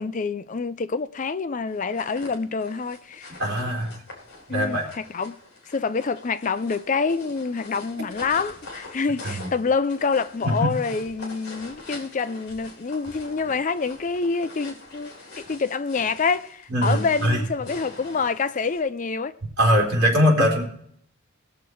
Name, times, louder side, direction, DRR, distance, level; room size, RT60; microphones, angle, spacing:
voice 1, 0.0-3.3 4.5-5.4 5.7-19.3, left 4 dB, 35° left, 0.4 m, -27 dB
sound 1, 1.7-18.8, left 2 dB, 50° left, 3.4 m, -43 dB
voice 2, 3.4-4.0 4.5-4.9 9.2-9.5 10.4-10.7 16.7-17.4 19.6-20.6, equal, 50° right, 3.7 m, -21 dB
19.5 x 6.9 x 4.7 m
head